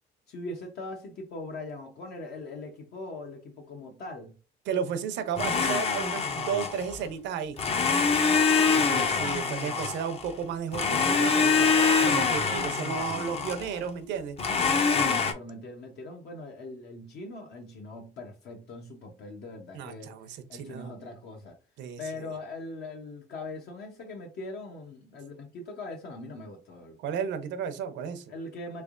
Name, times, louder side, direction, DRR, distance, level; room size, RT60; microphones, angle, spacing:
voice 1, 0.3-4.4 7.9-9.3 14.7-20.1 20.5-21.6 22.0-27.0 28.3-28.8, left 2 dB, 60° left, 0.8 m, -41 dB
voice 2, 4.7-7.6 8.9-14.4 19.7-20.9 21.8-22.3 27.0-28.3, right 7 dB, 75° right, 0.7 m, -33 dB
Domestic sounds home sounds, 5.4-7.0 7.6-10.3 10.7-13.8 14.4-15.3, left 5 dB, 35° left, 0.5 m, -25 dB
3.6 x 3.3 x 2.5 m
cardioid pair, 130°, 18 cm